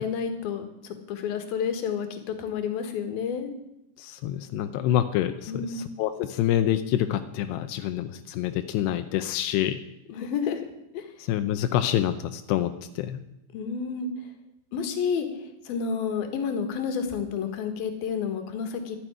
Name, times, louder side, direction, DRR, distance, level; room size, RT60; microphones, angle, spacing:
voice 1, 0.0-3.5 5.5-5.9 10.1-11.1 13.5-14.3 14.7-19.0, left 6 dB, 60° left, 7 dB, 3.0 m, -30 dB
voice 2, 4.0-9.8 11.3-13.2, left 11 dB, 85° left, 8 dB, 2.4 m, -27 dB
12.5 x 10.5 x 10.0 m, 0.84 s
omnidirectional pair, 5.8 m